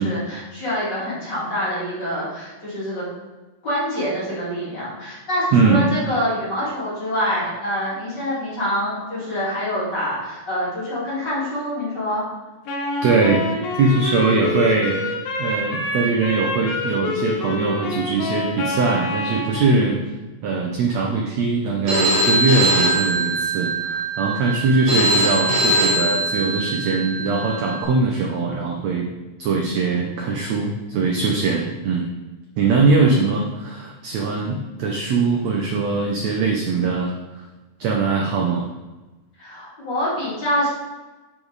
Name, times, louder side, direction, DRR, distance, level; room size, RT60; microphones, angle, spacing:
voice 1, 0.0-3.0 3.6-12.2 32.9-33.3 39.4-40.7, equal, 30° left, -9 dB, 3.1 m, -26 dB
voice 2, 5.5-5.9 13.0-13.5 13.8-15.0 15.4-20.0 20.4-29.1 29.4-32.1 32.6-37.1 37.8-38.7, right 4 dB, 80° right, 0 dB, 1.5 m, -21 dB
Wind instrument woodwind instrument, 12.7-19.6, left 2 dB, 80° left, 3.2 m, -26 dB
Telephone, 21.9-27.8, right 1 dB, 40° right, 1.8 m, -22 dB
10.5 x 5.0 x 4.1 m, 1.2 s
omnidirectional pair, 4.2 m